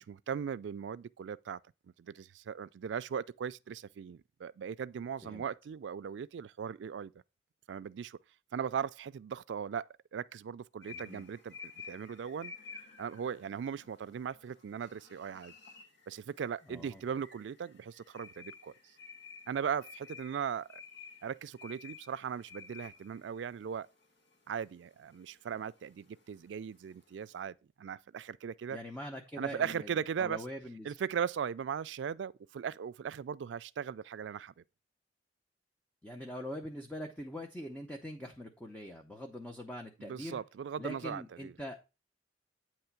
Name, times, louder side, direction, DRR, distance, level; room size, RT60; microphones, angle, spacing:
voice 1, 0.0-1.6 2.0-7.1 7.7-8.2 8.5-12.5 13.0-15.5 16.1-18.7 19.5-20.8 21.2-23.9 24.5-28.8 29.4-30.4 30.8-34.5 40.0-41.5, right 7 dB, 90° right, 0.3 m, -38 dB
sound 1, 10.8-27.4, left 5 dB, 70° left, 1.5 m, -53 dB
voice 2, 10.9-11.3 16.7-17.0 28.7-31.0 36.0-40.4 40.8-41.8, equal, 10° left, 0.7 m, -43 dB
8.9 x 3.1 x 5.8 m
head